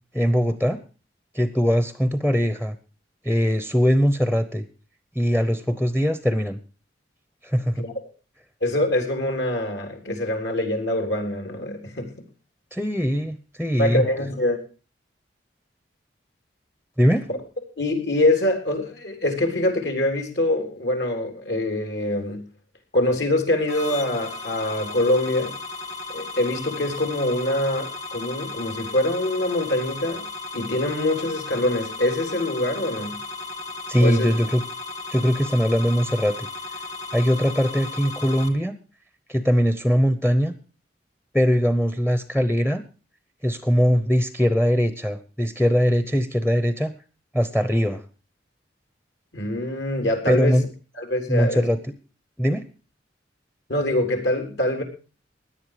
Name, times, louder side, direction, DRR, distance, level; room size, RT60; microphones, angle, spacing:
voice 1, 0.1-0.8 1.3-2.7 3.2-4.6 5.1-6.6 7.4-7.8 12.7-14.0 17.0-17.3 33.9-34.6 35.1-36.5 37.1-38.7 39.3-40.5 41.3-42.8 43.4-46.9 47.3-48.0 50.3-50.6 51.3-51.8 52.4-52.6, equal, 5° left, 11 dB, 0.8 m, -21 dB
voice 2, 8.6-12.1 13.8-14.6 17.3-17.4 17.8-22.4 22.9-25.5 26.1-30.2 30.5-33.2 34.0-34.3 49.3-50.6 51.0-51.6 53.7-54.8, left 1 dB, 65° left, 4 dB, 3.8 m, -24 dB
sound 1, 23.7-38.5, left 3 dB, 40° left, 2.1 m, -35 dB
17.0 x 10.5 x 5.0 m, 0.36 s
head